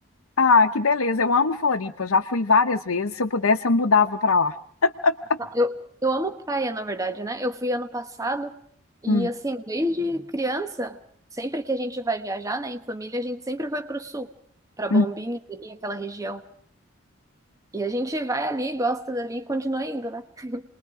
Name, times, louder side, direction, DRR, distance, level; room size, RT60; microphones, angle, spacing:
voice 1, 0.4-4.5 4.8-5.2 9.1-9.3 14.9-15.0, left 4 dB, 85° left, 0.9 m, -20 dB
voice 2, 6.0-8.5 9.0-11.0 11.3-14.3 14.8-16.4 17.7-20.6, right 1 dB, 15° right, 1.2 m, -28 dB
28.5 x 21.0 x 4.9 m
head